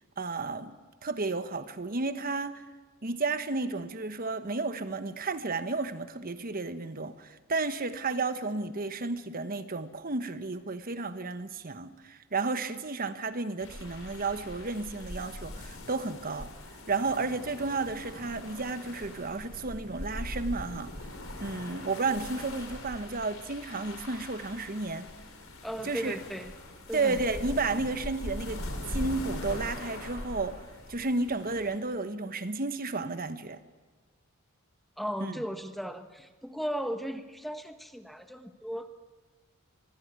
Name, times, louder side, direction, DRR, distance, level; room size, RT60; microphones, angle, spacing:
voice 1, 0.2-0.7 1.0-2.6 3.0-16.5 16.9-20.9 21.4-25.1 25.8-26.2 26.9-33.6 35.2-35.4, right 3 dB, 40° right, 1.2 m, -32 dB
sound 1, 13.6-31.8, left 1 dB, 65° left, 5.1 m, -41 dB
voice 2, 25.6-26.5 26.9-27.2 35.0-38.9, equal, ahead, 1.1 m, -36 dB
24.5 x 21.5 x 9.6 m
head